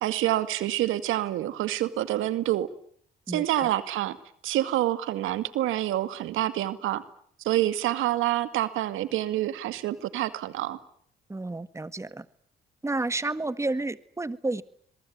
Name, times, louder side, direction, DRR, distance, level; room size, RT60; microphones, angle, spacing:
voice 1, 0.0-2.7 3.3-4.2 4.4-7.0 7.4-10.8, right 14 dB, 90° right, 12 dB, 2.3 m, -27 dB
voice 2, 3.3-3.7 11.3-12.3 12.8-14.6, right 2 dB, 15° right, 14 dB, 1.8 m, -31 dB
26.5 x 23.0 x 9.5 m, 0.64 s
cardioid pair, 90°, 20 cm